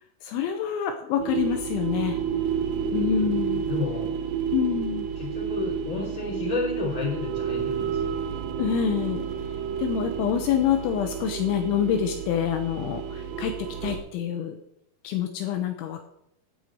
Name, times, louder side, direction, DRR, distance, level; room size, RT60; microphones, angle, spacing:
voice 1, 0.2-2.2 2.9-3.7 4.5-5.1 8.6-9.2 9.8-13.5 13.8-14.6 15.0-16.1, left 9 dB, 80° left, 6 dB, 3.0 m, -26 dB
sound 1, 1.2-14.0, right 7 dB, 90° right, 1.9 m, -30 dB
voice 2, 2.5-4.2 5.1-8.2, left 3 dB, 10° left, -1 dB, 2.7 m, -32 dB
13.0 x 5.0 x 8.5 m, 0.76 s
omnidirectional pair, 5.9 m